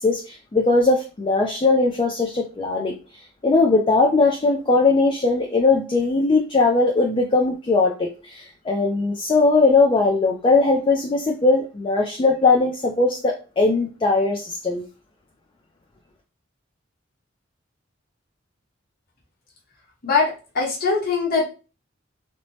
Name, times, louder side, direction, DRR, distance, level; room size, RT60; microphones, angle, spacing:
voice 1, 0.0-3.0 3.4-14.8, left 3 dB, 25° left, 0.4 m, -19 dB
voice 2, 20.0-21.4, left 4 dB, 50° left, 0.9 m, -22 dB
3.0 x 2.1 x 2.7 m
head